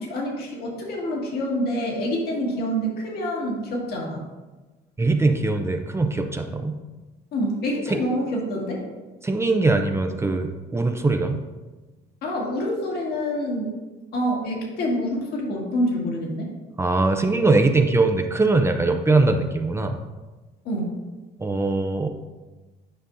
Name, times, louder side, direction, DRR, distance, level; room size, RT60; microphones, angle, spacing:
voice 1, 0.0-4.2 7.3-8.8 12.2-13.7 14.1-16.5 20.7-20.9, equal, 70° left, -1 dB, 1.8 m, -26 dB
voice 2, 5.0-6.8 7.9-8.0 9.2-11.4 16.8-20.0 21.4-22.1, right 3 dB, 15° right, 5 dB, 0.5 m, -21 dB
9.8 x 5.2 x 2.6 m, 1.2 s
cardioid pair, 110°, 17 cm